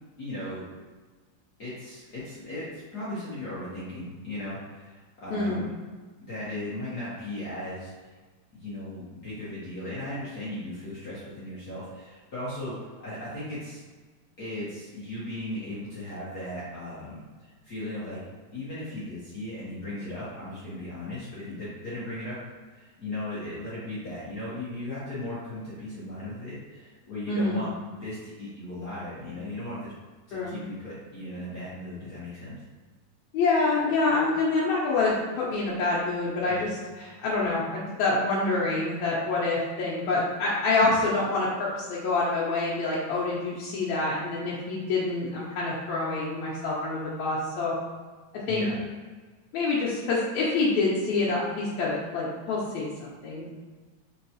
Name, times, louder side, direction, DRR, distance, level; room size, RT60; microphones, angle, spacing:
voice 1, 0.2-0.6 1.6-5.7 6.3-8.1 8.5-13.8 14.4-18.2 18.5-22.4 22.7-29.9 30.3-32.6 36.5-36.7 40.8-41.0 48.5-48.8, left 1 dB, 60° left, -10 dB, 1.0 m, -37 dB
voice 2, 5.3-5.7 27.3-27.6 30.3-30.6 33.3-47.8 48.5-48.7 49.5-53.5, left 3 dB, 80° left, -7 dB, 2.0 m, -27 dB
4.5 x 3.9 x 2.8 m, 1.4 s
omnidirectional pair, 3.3 m